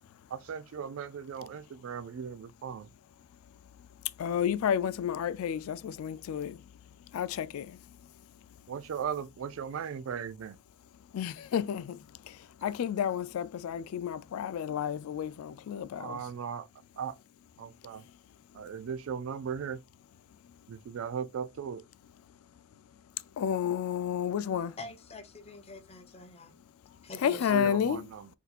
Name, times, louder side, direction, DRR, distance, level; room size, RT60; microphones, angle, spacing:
voice 1, 0.3-2.9 8.7-10.6 16.0-16.7 17.0-17.1 17.6-18.0 18.5-19.8 20.7-21.8 27.5-28.3, right 7 dB, 70° right, 0.3 m, -37 dB
voice 2, 4.2-6.7 7.0-8.1 11.1-16.3 17.9-18.1 23.4-24.8 27.2-28.1, left 8 dB, 80° left, 0.3 m, -31 dB
voice 3, 24.8-26.5 27.0-27.7, left 2 dB, 30° left, 0.5 m, -46 dB
4.1 x 2.7 x 2.3 m
head